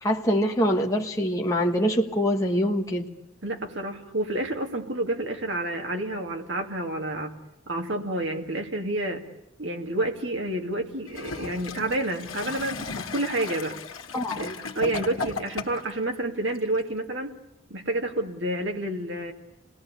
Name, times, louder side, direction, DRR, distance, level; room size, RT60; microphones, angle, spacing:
voice 1, 0.0-3.1 14.1-14.6, equal, 15° left, 0 dB, 1.5 m, -24 dB
voice 2, 3.4-7.3 7.7-9.2 9.6-13.8 14.4-17.3 17.7-19.3, right 1 dB, 60° right, 3 dB, 2.7 m, -29 dB
Gurgling / Toilet flush, 11.1-16.0 16.8-16.9, left 4 dB, 80° left, 1.8 m, -35 dB
28.0 x 20.0 x 8.5 m, 0.84 s
head